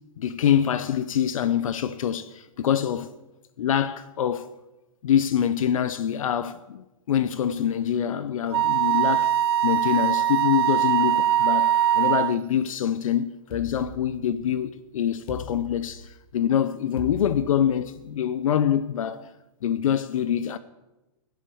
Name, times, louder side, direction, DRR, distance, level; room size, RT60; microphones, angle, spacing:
voice 1, 0.2-3.1 3.6-4.5 5.0-9.4 9.6-19.2 19.6-20.6, left 9 dB, 75° left, 0.8 m, -25 dB
Wind instrument woodwind instrument, 8.5-12.4, right 11 dB, 45° right, 0.4 m, -22 dB
sound 1, 13.5-14.6 15.3-16.3 17.0-18.1, left 2 dB, 25° left, 1.5 m, -40 dB
16.0 x 11.0 x 7.0 m
supercardioid pair, 175°, 17 cm